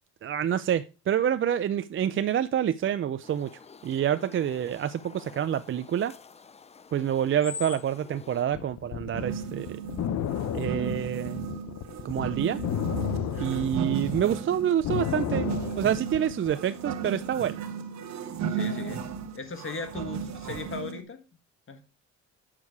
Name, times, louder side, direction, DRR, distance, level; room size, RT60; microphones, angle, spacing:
voice 1, 0.2-3.5 3.8-6.1 6.9-9.8 10.5-11.5 12.0-12.6 13.4-15.5 15.8-17.7, right 9 dB, 45° right, 12 dB, 0.5 m, -27 dB
sound 1, 3.2-8.4, left 5 dB, 20° left, 0.5 m, -45 dB
sound 2, 8.5-14.2 14.6-16.5, left 10 dB, 65° left, 0.7 m, -32 dB
sound 3, 9.1-21.0, right 6 dB, 65° right, 1.1 m, -35 dB
voice 2, 13.3-13.7 18.5-21.2 21.7-21.8, left 4 dB, 45° left, 7 dB, 1.5 m, -38 dB
7.4 x 6.4 x 4.6 m, 0.32 s
cardioid pair, 90°, 30 cm